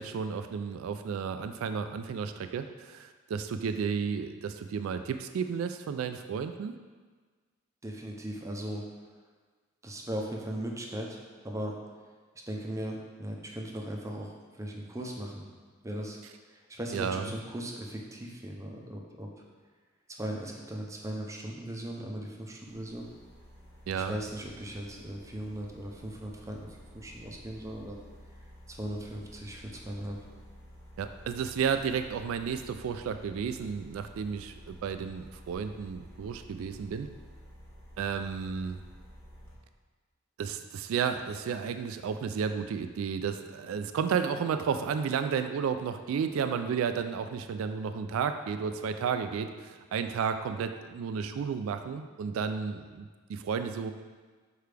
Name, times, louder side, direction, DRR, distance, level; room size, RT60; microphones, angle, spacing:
voice 1, 0.0-6.7 16.9-17.3 23.9-24.1 31.0-37.1 38.0-38.8 40.4-53.9, right 6 dB, 85° right, 9 dB, 0.3 m, -32 dB
voice 2, 7.8-8.8 9.8-11.7 12.5-15.5 15.8-16.2 16.5-19.3 20.1-23.0 23.9-26.7 26.9-28.0 28.7-30.2, right 1 dB, 15° right, 0 dB, 0.6 m, -38 dB
sound 1, 22.6-39.6, equal, 10° left, 1.3 m, -52 dB
6.6 x 4.5 x 3.4 m, 1.5 s
head